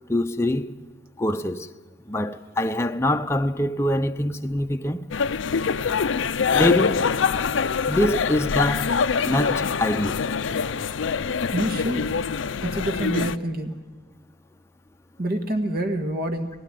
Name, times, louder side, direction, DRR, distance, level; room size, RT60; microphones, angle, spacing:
voice 1, 0.1-0.7 1.2-1.7 2.1-5.0 6.5-7.1 7.9-9.0 9.2-10.2, left 1 dB, 15° left, 0.6 m, -24 dB
sound 1, 5.1-13.4, left 5 dB, 85° left, 0.6 m, -24 dB
voice 2, 11.5-12.2 12.6-13.8 15.2-16.5, right 1 dB, 55° right, 1.7 m, -27 dB
19.0 x 17.0 x 9.1 m
head